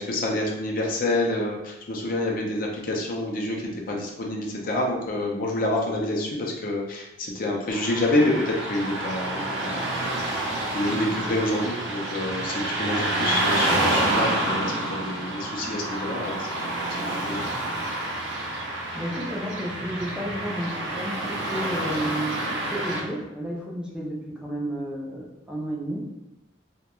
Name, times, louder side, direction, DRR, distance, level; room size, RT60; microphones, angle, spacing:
voice 1, 0.0-9.9 10.2-16.7 17.0-17.4, left 1 dB, 50° left, 0 dB, 0.5 m, -28 dB
Car passing by / Traffic noise roadway noise, 7.7-23.0, right 1 dB, 75° right, 0.5 m, -28 dB
voice 2, 18.9-26.1, equal, 5° right, -4 dB, 0.4 m, -32 dB
2.3 x 2.1 x 2.9 m, 0.97 s
head